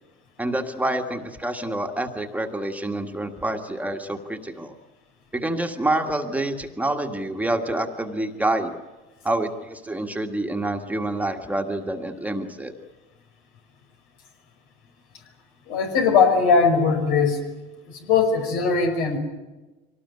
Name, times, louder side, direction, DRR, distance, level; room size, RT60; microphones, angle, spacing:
voice 1, 0.4-4.7 5.3-8.7 9.2-12.7, right 1 dB, 5° right, 4 dB, 1.7 m, -27 dB
voice 2, 15.7-17.4 17.9-19.2, left 5 dB, 85° left, 5 dB, 5.3 m, -20 dB
24.0 x 18.5 x 9.5 m, 1.2 s
cardioid pair, 125°, 21 cm